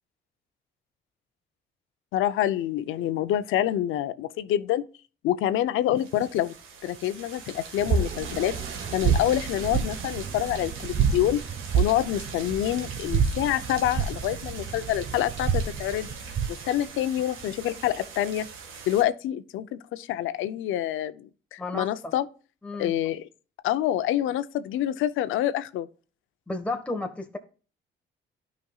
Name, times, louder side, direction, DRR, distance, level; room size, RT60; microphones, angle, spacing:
voice 1, 2.1-4.8 5.2-6.5 6.8-8.5 8.9-11.4 11.7-16.1 16.5-18.5 18.9-22.3 22.8-23.2 23.6-25.9, left 12 dB, 90° left, 0.7 m, -27 dB
sound 1, 6.0-19.0, right 5 dB, 85° right, 1.7 m, -41 dB
sound 2, 7.8-16.7, right 6 dB, 55° right, 0.9 m, -29 dB
voice 2, 21.6-22.1 22.6-22.9 26.5-27.4, left 2 dB, 5° left, 1.3 m, -32 dB
12.0 x 5.2 x 2.4 m
cardioid pair, 90°, 20 cm